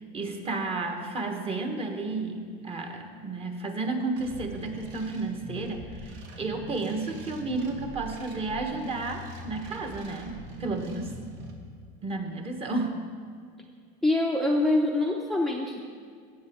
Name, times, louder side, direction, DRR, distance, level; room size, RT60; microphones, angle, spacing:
voice 1, 0.0-11.2 12.0-13.0, right 3 dB, 30° right, 4 dB, 1.2 m, -32 dB
sound 1, 4.2-11.5, right 1 dB, 65° right, 1.6 m, -43 dB
voice 2, 14.0-15.8, left 2 dB, ahead, 0 dB, 0.6 m, -25 dB
16.0 x 7.8 x 3.6 m, 2.1 s
cardioid pair, 135°, 20 cm